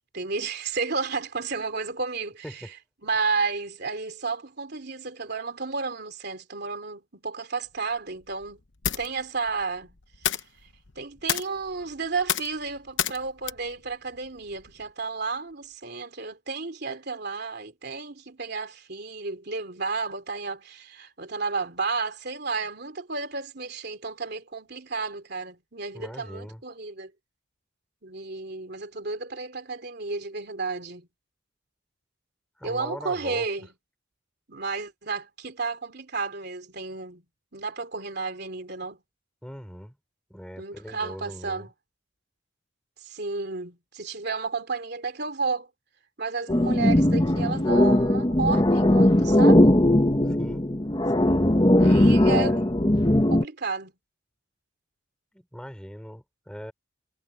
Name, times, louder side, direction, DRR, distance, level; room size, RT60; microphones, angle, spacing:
voice 1, 0.1-2.7 3.0-8.6 9.0-9.9 10.2-10.4 10.9-27.1 28.0-31.1 32.6-33.7 34.5-37.2 37.5-39.0 40.6-41.7 43.0-45.7 46.2-49.7 51.8-52.7 53.3-53.9, right 4 dB, 55° right, 3.3 m, -32 dB
sound 1, 7.7-14.9, left 10 dB, 70° left, 1.0 m, -34 dB
voice 2, 25.9-26.6 32.6-33.5 39.4-40.0 40.3-41.7 50.3-50.6 51.8-52.3 55.3-56.7, equal, 5° left, 5.3 m, -40 dB
sound 2, 46.5-53.4, left 1 dB, 25° left, 1.1 m, -19 dB
head